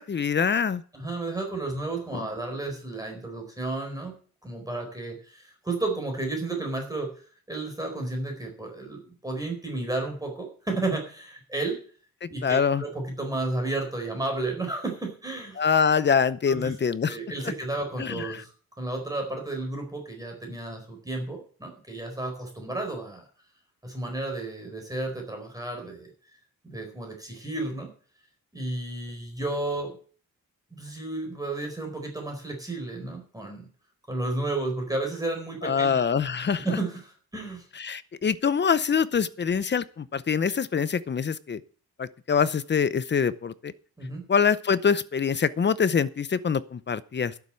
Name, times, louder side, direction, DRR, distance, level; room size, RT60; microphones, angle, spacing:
voice 1, 0.0-0.8 2.1-2.2 12.2-12.8 15.6-17.2 18.0-18.4 35.6-36.8 37.8-41.6 42.0-43.7 44.3-47.3, left 6 dB, 30° left, 16 dB, 0.7 m, -25 dB
voice 2, 0.9-4.1 4.4-7.1 7.5-11.8 12.3-15.6 16.5-16.7 17.0-18.5 18.8-23.2 23.8-26.1 26.6-27.9 28.5-29.9 30.7-33.7 34.1-36.0 36.6-37.7 44.0-44.3, right 2 dB, 10° right, 2 dB, 4.4 m, -32 dB
11.5 x 7.0 x 7.7 m, 0.43 s
cardioid pair, 125°, 36 cm